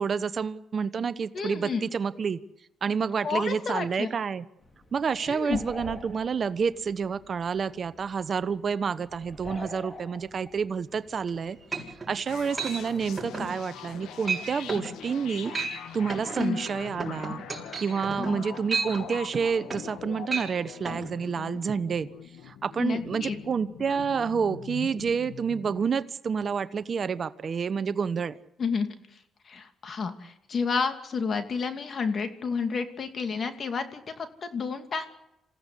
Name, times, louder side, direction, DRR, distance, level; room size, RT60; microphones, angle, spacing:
voice 1, 0.0-2.4 2.8-4.4 4.9-11.6 12.1-15.5 15.9-17.4 17.8-22.1 22.4-28.4, right 6 dB, 45° right, 14 dB, 1.0 m, -29 dB
voice 2, 1.3-1.8 3.2-4.1 5.3-5.6 16.4-16.6 18.2-18.3 22.8-23.4 28.6-29.0 29.5-35.1, left 5 dB, 45° left, 7 dB, 2.6 m, -30 dB
sound 1, 4.6-12.9, left 1 dB, 25° left, 4.9 m, -46 dB
sound 2, 11.3-11.4 11.7-12.1 12.6-12.8 13.2-13.5 13.8-14.0 14.3-14.4 14.7-14.9 15.4-15.8 16.1-20.0 20.3-20.5 20.9-21.0, right 4 dB, 20° right, 6.8 m, -32 dB
sound 3, 12.3-25.9, left 9 dB, 85° left, 1.6 m, -42 dB
27.0 x 16.0 x 8.4 m, 0.87 s
cardioid pair, 90°, 0 cm